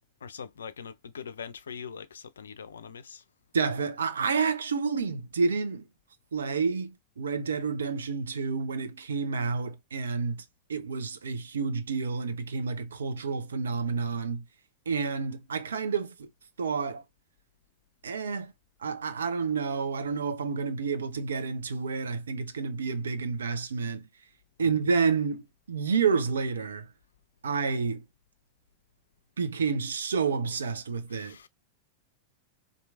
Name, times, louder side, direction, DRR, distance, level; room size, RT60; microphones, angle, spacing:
voice 1, 0.2-3.2 24.6-24.7 31.1-31.5, left 6 dB, 70° left, 0.4 m, -42 dB
voice 2, 3.5-5.9 6.3-10.4 10.7-14.5 14.9-16.3 16.6-17.0 18.0-18.5 18.8-24.1 24.6-26.9 27.4-28.1 29.4-31.4, right 5 dB, 70° right, 0.6 m, -29 dB
4.4 x 2.6 x 2.3 m
figure-of-eight pair, 90°, 0 cm